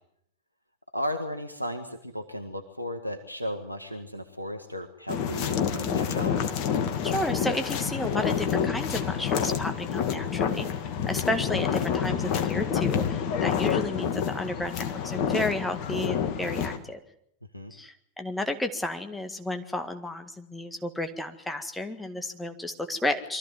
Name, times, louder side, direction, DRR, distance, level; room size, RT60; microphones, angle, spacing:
voice 1, 0.9-6.4 17.5-17.7, equal, 90° left, 7 dB, 1.4 m, -35 dB
sound 1, 5.1-16.8, left 7 dB, 40° left, 2.0 m, -28 dB
voice 2, 7.0-10.7 11.1-17.0 17.7-23.4, left 1 dB, 5° left, 6 dB, 1.9 m, -32 dB
24.0 x 14.5 x 9.4 m, 0.71 s
figure-of-eight pair, 90°, 0 cm